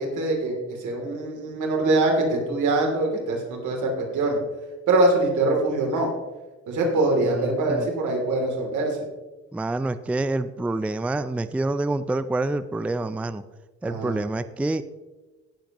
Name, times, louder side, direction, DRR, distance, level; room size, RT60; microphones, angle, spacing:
voice 1, 0.0-4.4 4.9-6.1 6.7-9.0 13.8-14.2, right 2 dB, 80° right, 1 dB, 3.0 m, -23 dB
voice 2, 7.2-7.9 9.5-13.4 13.8-14.8, right 2 dB, 5° right, 13 dB, 0.4 m, -27 dB
17.5 x 7.7 x 3.0 m, 1.2 s
cardioid pair, 90°, 30 cm